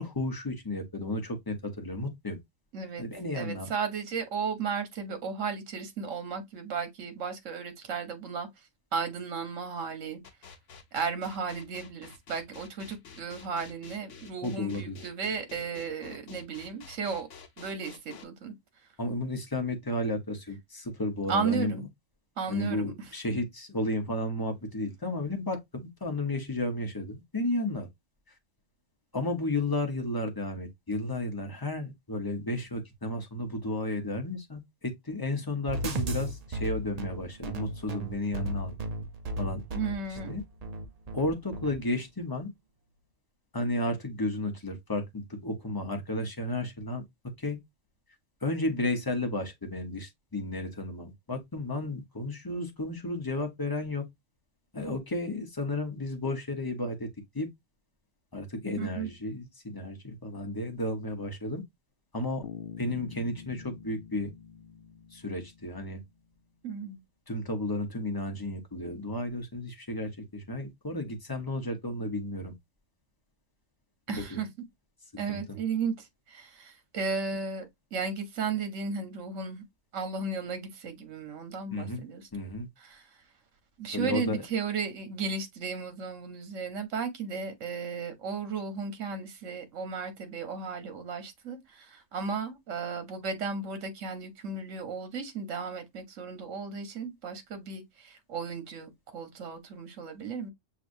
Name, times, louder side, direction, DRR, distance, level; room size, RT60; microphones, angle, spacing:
voice 1, 0.0-2.4 3.0-3.7 14.4-15.0 19.0-21.7 22.5-27.9 29.1-38.7 39.4-39.6 40.3-40.4 41.1-42.5 43.5-47.0 47.4-47.6 48.4-54.0 54.7-57.1 57.3-57.5 58.3-61.6 62.1-62.4 62.8-64.3 65.1-66.0 67.3-72.5 74.1-74.4 75.3-75.6 81.7-82.0 82.3-82.7 83.9-84.4, left 2 dB, 20° left, 0.8 m, -33 dB
voice 2, 2.7-3.1 3.3-8.5 8.9-10.2 10.9-17.3 17.6-18.5 21.3-21.8 22.4-23.1 39.7-40.3 58.8-59.1 66.6-67.0 74.1-74.5 75.2-79.6 79.9-82.3 82.8-83.2 83.8-100.5, right 5 dB, 80° right, 1.3 m, -34 dB
sound 1, 10.2-18.2, left 6 dB, 75° left, 1.1 m, -49 dB
sound 2, 35.7-41.8, right 1 dB, 45° right, 0.5 m, -35 dB
Bass guitar, 62.4-66.2, left 8 dB, 55° left, 0.7 m, -46 dB
6.3 x 2.6 x 2.6 m
omnidirectional pair, 1.3 m